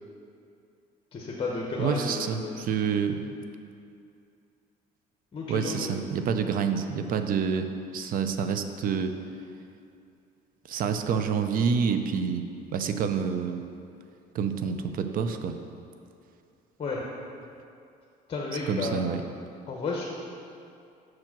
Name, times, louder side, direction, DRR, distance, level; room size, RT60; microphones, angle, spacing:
voice 1, 1.1-2.6 5.3-6.0 16.8-17.0 18.3-19.0 19.7-20.0, left 3 dB, 35° left, -2 dB, 0.9 m, -32 dB
voice 2, 1.8-3.3 5.5-7.7 7.9-9.1 10.7-12.4 12.7-13.6 14.3-15.5 18.7-19.2, right 6 dB, 55° right, 8 dB, 0.5 m, -28 dB
6.3 x 4.5 x 5.9 m, 2.5 s
cardioid pair, 110°, 17 cm